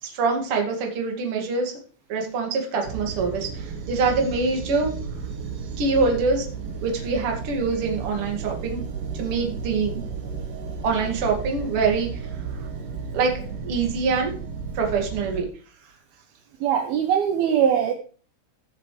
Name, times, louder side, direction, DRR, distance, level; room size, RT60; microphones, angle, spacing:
voice 1, 0.0-1.7 2.1-5.0 5.6-6.5 6.8-8.8 9.1-9.9 10.8-12.3 13.1-14.3 14.7-15.5, right 4 dB, 45° right, 2 dB, 1.9 m, -25 dB
sound 1, 2.8-15.4, right 6 dB, 60° right, 2.4 m, -33 dB
voice 2, 16.6-17.9, right 8 dB, 80° right, 5 dB, 2.1 m, -21 dB
15.5 x 7.3 x 3.3 m, 0.41 s
omnidirectional pair, 5.7 m